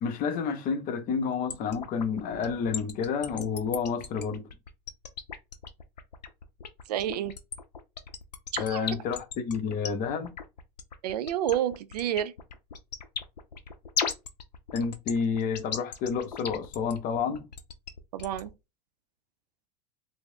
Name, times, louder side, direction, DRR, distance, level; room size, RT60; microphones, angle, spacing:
voice 1, 0.0-4.5 8.6-10.3 14.7-17.5, left 6 dB, 40° left, 0.6 m, -30 dB
sound 1, 1.5-18.5, left 6 dB, 85° left, 0.5 m, -36 dB
voice 2, 6.9-7.3 8.5-8.8 11.0-12.3 18.1-18.5, right 11 dB, 70° right, 0.4 m, -29 dB
2.3 x 2.0 x 3.5 m
figure-of-eight pair, 80°, 21 cm